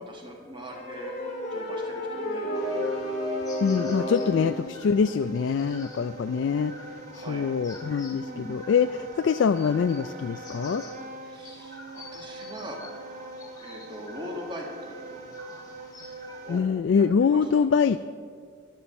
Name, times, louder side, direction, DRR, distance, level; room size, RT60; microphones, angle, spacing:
voice 1, 0.1-1.1 1.5-2.9 4.3-4.7 7.1-7.5 8.1-8.6 11.2-12.8 13.6-15.0 16.4-16.7 16.9-18.0, equal, 25° right, 0 dB, 1.6 m, -41 dB
sound 1, 0.7-4.7, left 1 dB, 35° left, 1.8 m, -31 dB
Wind instrument woodwind instrument, 1.2-16.7, right 1 dB, 40° right, 0.7 m, -43 dB
sound 2, 2.5-16.6, left 2 dB, 20° left, 1.6 m, -49 dB
voice 2, 3.6-6.7 7.1-10.8 16.5-18.0, left 6 dB, 65° left, 11 dB, 0.3 m, -24 dB
14.0 x 12.0 x 4.3 m, 2.1 s
head